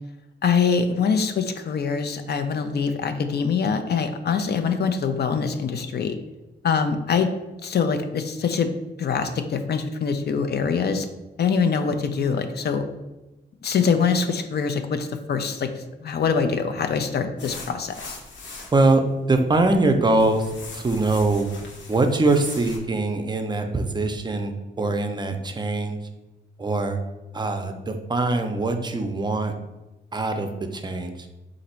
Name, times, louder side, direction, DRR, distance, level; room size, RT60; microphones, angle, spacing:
voice 1, 0.4-6.1 6.6-7.3 7.6-8.7 9.0-11.1 11.4-12.8 13.6-15.7 16.0-18.2, left 6 dB, 60° left, 7 dB, 0.5 m, -24 dB
sound 1, 17.4-18.8 19.4-19.9 20.2-22.8, left 3 dB, 85° left, 1.0 m, -40 dB
voice 2, 19.3-20.5 20.7-21.5 21.9-26.0 26.6-27.0 27.3-29.5 30.1-31.3, right 2 dB, 25° right, 6 dB, 0.5 m, -22 dB
3.9 x 2.6 x 4.3 m, 1.0 s
cardioid pair, 100°, 19 cm